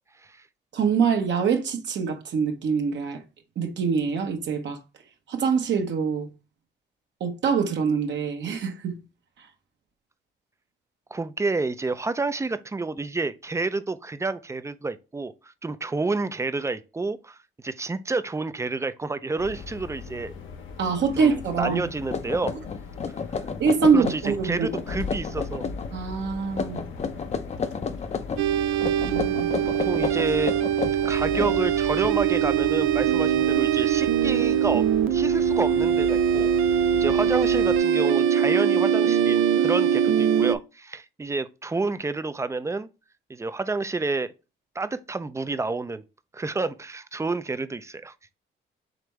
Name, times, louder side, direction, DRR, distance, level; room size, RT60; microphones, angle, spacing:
voice 1, 0.7-3.2 3.6-4.8 5.3-6.3 7.2-8.9 9.4-9.5 20.8-21.8 23.6-24.7 25.9-26.9 28.8-29.5, right 5 dB, 65° right, 1.0 m, -24 dB
voice 2, 11.1-17.4 17.6-20.3 21.2-22.5 23.9-25.6 29.6-30.5 31.0-34.8 35.1-36.5 36.9-42.9 43.3-44.3 44.8-46.0 46.3-48.1, right 3 dB, 15° right, 0.4 m, -29 dB
sound 1, 19.4-37.8, left 4 dB, 75° left, 1.0 m, -39 dB
sound 2, 21.7-21.8 22.1-24.4 24.7-25.9 26.5-28.4 28.8-32.1, left 5 dB, 35° left, 0.6 m, -31 dB
sound 3, 28.4-40.6, right 9 dB, 90° right, 0.4 m, -22 dB
5.0 x 3.4 x 3.1 m
cardioid pair, 90°, 20 cm